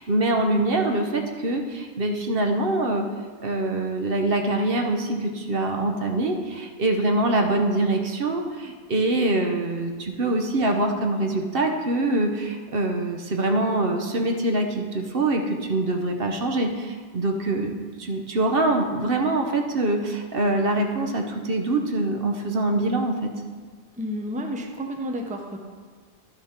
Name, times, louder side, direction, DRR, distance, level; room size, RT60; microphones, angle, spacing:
voice 1, 0.0-3.1 3.4-23.3, right 2 dB, 60° right, 3 dB, 1.1 m, -24 dB
voice 2, 24.0-25.6, equal, 10° right, 3 dB, 0.7 m, -31 dB
11.5 x 6.8 x 4.4 m, 1.6 s
omnidirectional pair, 1.1 m